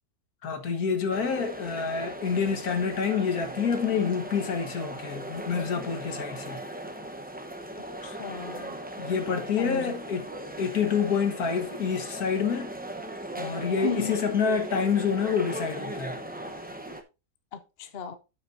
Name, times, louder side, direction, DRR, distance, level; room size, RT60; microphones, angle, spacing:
voice 1, 0.4-6.6 9.0-10.3 10.6-12.7 13.4-16.2, left 6 dB, 75° left, 1.9 m, -27 dB
sound 1, 1.1-17.0, right 1 dB, 10° right, 0.7 m, -38 dB
voice 2, 8.0-8.7 9.6-9.9 13.8-14.1 17.5-18.2, left 4 dB, 45° left, 1.0 m, -34 dB
12.5 x 5.8 x 2.6 m
omnidirectional pair, 1.6 m